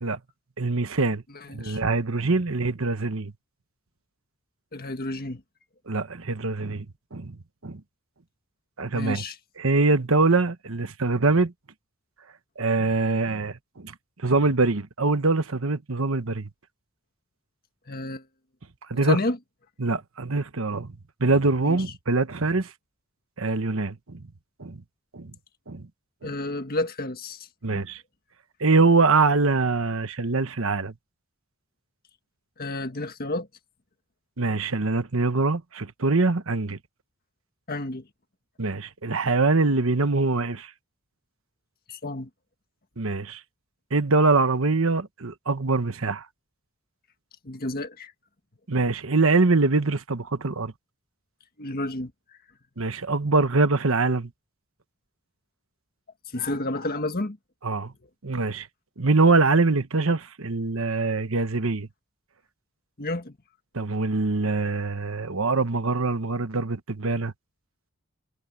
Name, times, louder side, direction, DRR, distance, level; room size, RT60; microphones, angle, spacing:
voice 1, 0.6-1.2 1.5-3.3 5.9-6.8 7.1-7.4 7.6-7.8 8.8-9.2 9.6-11.5 12.6-13.9 14.2-16.5 18.9-19.2 19.8-20.9 21.2-22.7 23.4-24.3 24.6-24.8 25.1-25.3 25.7-25.9 26.2-26.3 27.6-28.0 28.6-30.9 34.4-36.8 38.6-40.7 43.0-43.4 43.9-46.3 48.7-50.7 52.8-54.3 57.6-57.9 58.2-58.7 59.0-61.9 63.7-67.3, right 3 dB, 65° right, 1.2 m, -23 dB
voice 2, 1.3-1.8 4.7-5.4 8.9-9.4 17.9-18.2 18.9-19.4 21.6-21.8 26.2-27.8 32.6-33.5 37.7-38.1 41.9-42.3 47.4-48.1 51.6-52.1 56.3-57.4 63.0-63.4, left 2 dB, 45° left, 1.7 m, -31 dB
head